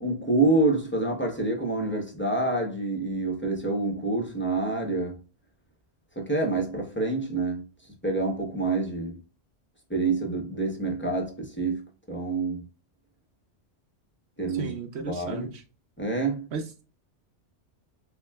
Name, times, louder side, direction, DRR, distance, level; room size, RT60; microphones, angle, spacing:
voice 1, 0.0-5.2 6.2-7.6 8.0-9.1 9.9-11.8 12.1-12.6 14.4-14.7 15.1-15.5 16.0-16.5, right 2 dB, 10° left, 0.7 m, -27 dB
voice 2, 14.5-15.6 16.5-16.8, right 6 dB, 70° right, 0.9 m, -35 dB
5.7 x 2.2 x 2.2 m
omnidirectional pair, 1.2 m